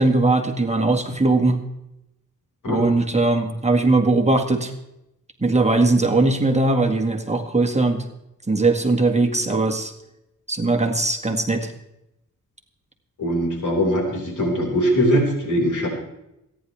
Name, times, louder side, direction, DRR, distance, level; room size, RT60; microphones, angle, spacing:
voice 1, 0.0-1.6 2.7-4.7 5.4-8.0 8.5-9.9 10.5-11.7, right 2 dB, 20° right, 4 dB, 1.9 m, -20 dB
voice 2, 13.2-15.9, equal, 65° left, 0 dB, 5.3 m, -21 dB
27.0 x 10.5 x 3.4 m, 0.86 s
cardioid pair, 70°, 32 cm